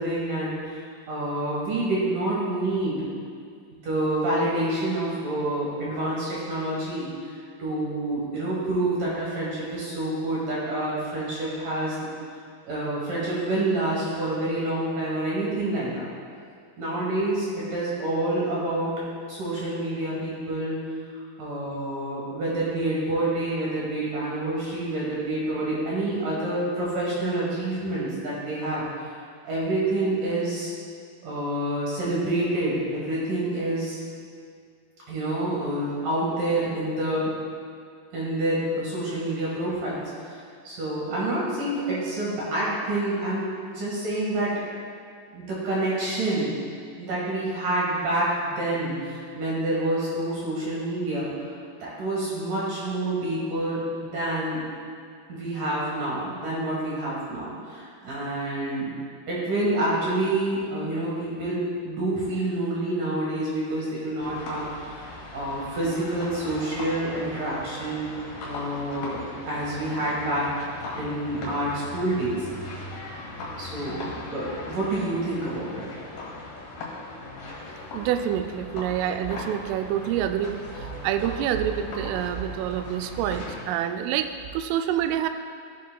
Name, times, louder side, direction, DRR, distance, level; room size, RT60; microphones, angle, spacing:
voice 1, 0.0-3.0 3.8-12.0 12.6-16.1 16.8-18.9 19.3-20.9 21.4-28.8 29.4-30.7 31.2-34.0 35.1-37.3 38.1-44.5 45.3-46.6 47.0-51.5 51.8-54.6 55.3-58.9 59.3-68.1 68.4-70.5 70.9-72.5 73.6-74.0 74.3-75.9, right 1 dB, 55° right, -6 dB, 2.6 m, -28 dB
sound 1, 64.2-83.6, left 2 dB, 65° left, 3.6 m, -39 dB
voice 2, 77.9-85.3, right 10 dB, 90° right, 8 dB, 3.1 m, -27 dB
15.0 x 7.6 x 2.3 m, 2.2 s
omnidirectional pair, 5.6 m